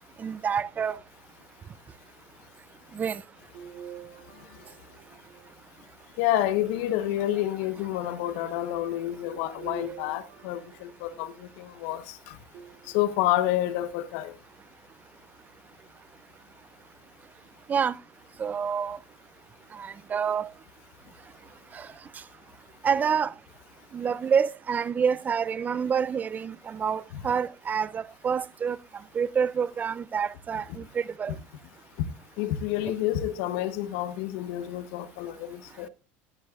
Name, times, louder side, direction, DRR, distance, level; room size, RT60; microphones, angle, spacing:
voice 1, 0.2-1.0 2.9-3.2 17.7-17.9 18.4-19.0 19.7-20.5 21.7-21.9 22.1-22.2 22.8-23.3 23.9-28.8 29.1-31.4, right 7 dB, 25° right, 0.5 m, -27 dB
sound 1, 3.5-5.8 6.5-7.5 9.5-11.6 12.5-13.4 14.0-14.1 15.5-15.6, right 8 dB, 60° right, 6.8 m, -47 dB
voice 2, 6.2-12.4 12.9-14.3 32.0-32.1 32.4-35.9, left 13 dB, 70° left, 1.1 m, -29 dB
14.0 x 12.0 x 2.5 m
supercardioid pair, 115°, 7 cm